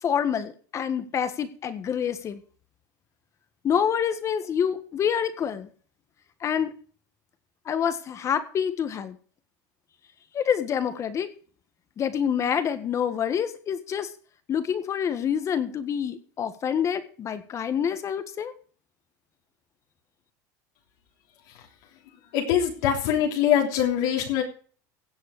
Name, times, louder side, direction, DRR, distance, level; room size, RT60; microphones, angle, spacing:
voice 1, 0.0-2.4 3.6-5.7 6.4-6.7 7.6-9.1 10.3-11.3 12.0-14.1 14.5-18.5, left 8 dB, 30° left, 11 dB, 1.7 m, -27 dB
voice 2, 22.3-24.4, left 9 dB, 70° left, 0 dB, 3.3 m, -23 dB
16.5 x 7.9 x 5.0 m, 0.42 s
supercardioid pair, 140°, 10 cm